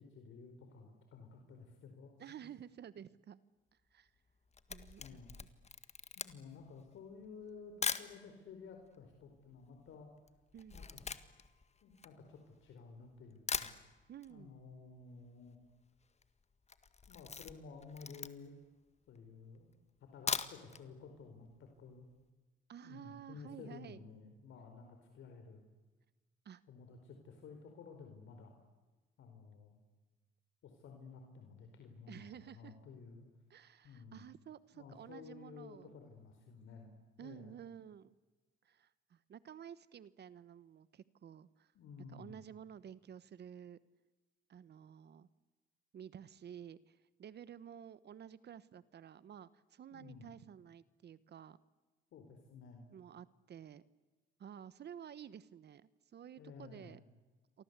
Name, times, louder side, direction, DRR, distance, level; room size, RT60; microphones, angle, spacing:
voice 1, 0.0-2.4 5.0-5.3 6.1-10.1 10.7-11.1 11.8-13.7 14.3-15.6 17.1-18.5 19.1-22.1 22.8-25.6 26.7-28.6 29.2-29.8 30.6-33.2 33.8-34.3 34.7-36.9 37.2-37.5 41.7-42.4 49.9-50.3 52.1-52.9 56.4-57.0, left 5 dB, 75° left, 4 dB, 4.7 m, -53 dB
voice 2, 2.2-3.4 3.9-4.1 4.7-5.2 10.5-10.8 14.1-14.6 22.7-24.0 26.4-26.6 32.1-32.7 33.5-35.9 37.2-38.1 38.6-41.7 42.1-43.8 44.5-45.3 45.9-51.6 52.9-53.8 54.4-57.0, right 9 dB, 60° right, 17 dB, 1.2 m, -52 dB
Camera, 4.3-8.1 8.8-8.9 9.1-12.8 13.2-13.3 13.5-14.3 14.6-14.7 15.0-15.1 15.3-15.7 16.0-16.3 16.6-18.6 19.1-19.2 20.0-20.8 21.2-21.3 21.6-21.7, left 5 dB, 35° left, 1.8 m, -41 dB
30.0 x 24.0 x 8.2 m, 1.2 s
cardioid pair, 90°, 20 cm